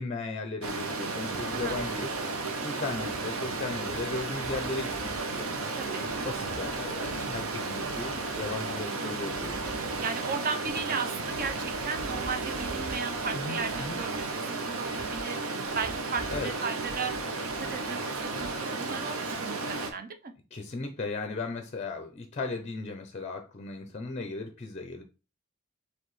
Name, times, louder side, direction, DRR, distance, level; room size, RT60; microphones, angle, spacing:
voice 1, 0.0-2.1 2.6-9.6 13.3-14.0 16.3-16.5 20.5-25.0, left 3 dB, 30° left, 0.5 m, -36 dB
Stream, 0.6-19.9, right 3 dB, 75° right, 0.8 m, -33 dB
voice 2, 5.8-6.1 9.0-9.2 10.0-15.4 15.7-17.1 17.6-20.3, right 5 dB, 45° right, 0.6 m, -36 dB
4.7 x 3.2 x 3.1 m
head